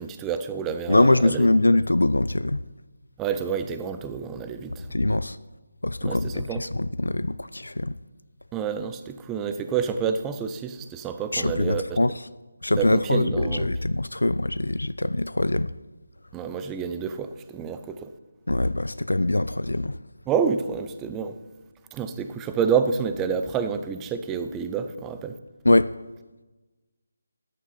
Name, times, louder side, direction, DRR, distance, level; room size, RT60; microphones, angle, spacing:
voice 1, 0.0-1.5 3.2-4.9 6.0-6.6 8.5-12.0 12.8-13.7 16.3-18.1 20.3-21.4 21.9-25.3, right 6 dB, 10° right, 9 dB, 0.6 m, -28 dB
voice 2, 0.9-2.6 4.9-5.4 5.8-8.0 11.3-12.2 12.6-15.7 18.5-20.0 25.6-25.9, left 2 dB, 85° left, 15 dB, 0.4 m, -23 dB
13.5 x 9.5 x 4.2 m, 1.2 s
figure-of-eight pair, 160°, 0 cm